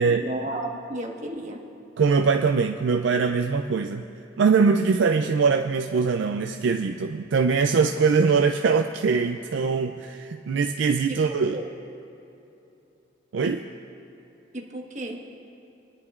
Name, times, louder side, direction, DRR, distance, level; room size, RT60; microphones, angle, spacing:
voice 1, 0.0-1.6 11.5-11.6 14.5-15.2, right 1 dB, 40° right, 0 dB, 1.4 m, -32 dB
voice 2, 2.0-4.0 4.4-11.6 13.3-13.6, right 5 dB, 65° right, 5 dB, 0.4 m, -22 dB
25.0 x 10.5 x 2.4 m, 2.8 s
head